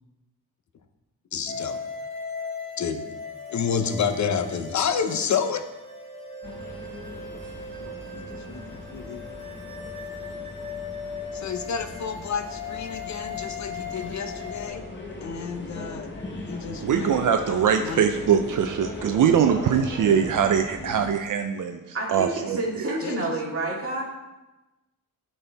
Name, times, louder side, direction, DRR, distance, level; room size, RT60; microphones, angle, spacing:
voice 1, 1.3-1.8 2.8-3.1 3.5-5.6 7.8-8.6 8.9-9.2 11.3-14.9 15.2-16.1 16.5-17.1 17.8-18.1 23.0-23.2, left 6 dB, 50° left, 8 dB, 0.7 m, -29 dB
sound 1, 1.5-14.7, left 5 dB, 15° left, 1.3 m, -38 dB
sound 2, 6.4-21.1, left 1 dB, 30° left, 1.2 m, -39 dB
voice 2, 16.8-22.9, right 7 dB, 60° right, 6 dB, 0.5 m, -22 dB
voice 3, 21.9-24.0, right 2 dB, 40° right, -3 dB, 2.0 m, -29 dB
12.5 x 4.3 x 3.4 m, 1.0 s
wide cardioid pair, 130°, 36 cm